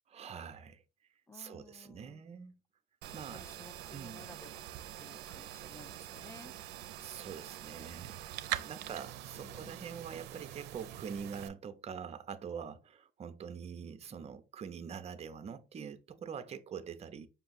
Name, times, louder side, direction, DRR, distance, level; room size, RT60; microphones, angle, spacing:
voice 1, 0.1-0.8 1.3-2.6 3.1-3.5 3.9-4.2 7.0-8.2 8.6-17.3, right 7 dB, 40° right, 0.7 m, -44 dB
voice 2, 1.3-2.2 3.3-4.6 4.9-6.5 9.3-10.0, left 2 dB, 15° left, 0.4 m, -55 dB
sound 1, 3.0-11.5, right 13 dB, 85° right, 0.5 m, -44 dB
5.4 x 2.3 x 4.0 m
cardioid pair, 110°, 17 cm